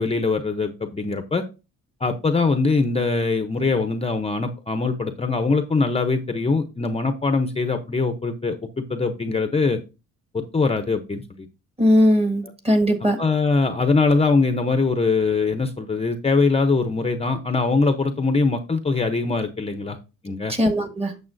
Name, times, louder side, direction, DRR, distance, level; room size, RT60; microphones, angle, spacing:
voice 1, 0.0-1.4 2.0-9.8 10.3-11.5 13.2-20.0 20.2-20.5, left 3 dB, 20° left, 0.8 m, -22 dB
voice 2, 11.8-13.2 20.5-21.1, equal, 20° right, 1.7 m, -19 dB
8.6 x 6.9 x 2.6 m
cardioid pair, 90°, 30 cm